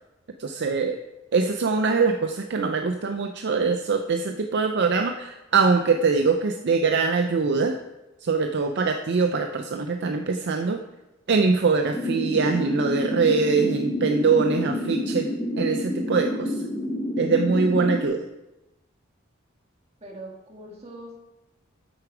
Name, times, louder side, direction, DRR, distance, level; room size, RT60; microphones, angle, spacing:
voice 1, 0.4-1.0 1.3-7.7 8.2-10.8 11.3-15.3 15.6-16.6 17.2-18.2, right 4 dB, 55° right, 6 dB, 0.5 m, -23 dB
sound 1, 11.9-18.0, left 1 dB, 10° left, 1.1 m, -28 dB
voice 2, 20.0-21.2, right 1 dB, 30° right, -1 dB, 2.1 m, -42 dB
8.5 x 8.1 x 4.8 m, 0.97 s
head